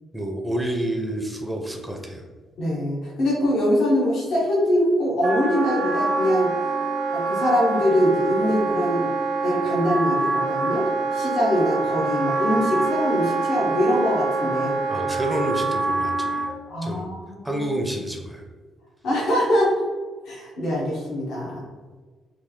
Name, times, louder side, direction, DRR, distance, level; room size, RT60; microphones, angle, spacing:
voice 1, 0.1-2.2 14.9-16.5 16.8-17.1 17.4-18.4, right 1 dB, 10° right, 2 dB, 0.5 m, -28 dB
voice 2, 2.6-6.5 7.1-9.1 9.4-10.8 11.1-14.7 16.7-17.7 19.0-19.7 20.2-21.6, equal, 75° left, -5 dB, 1.0 m, -23 dB
Wind instrument woodwind instrument, 5.2-16.5, right 3 dB, 70° right, 0.5 m, -25 dB
3.3 x 2.3 x 3.6 m, 1.4 s
cardioid pair, 90°, 0 cm